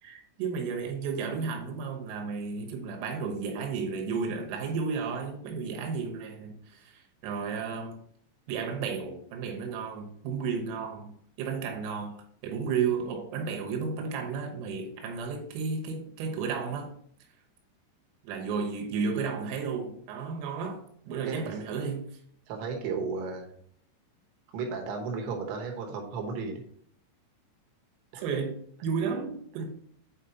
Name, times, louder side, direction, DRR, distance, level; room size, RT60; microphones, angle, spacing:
voice 1, 0.0-8.0 8.5-11.1 11.4-12.2 12.4-16.9 18.2-20.8 21.1-22.1 28.2-29.7, right 5 dB, 90° right, 2 dB, 3.9 m, -33 dB
voice 2, 22.5-23.5 24.5-26.6 28.1-28.2, right 4 dB, 70° right, 2 dB, 3.2 m, -34 dB
8.5 x 5.0 x 2.8 m, 0.64 s
omnidirectional pair, 5.9 m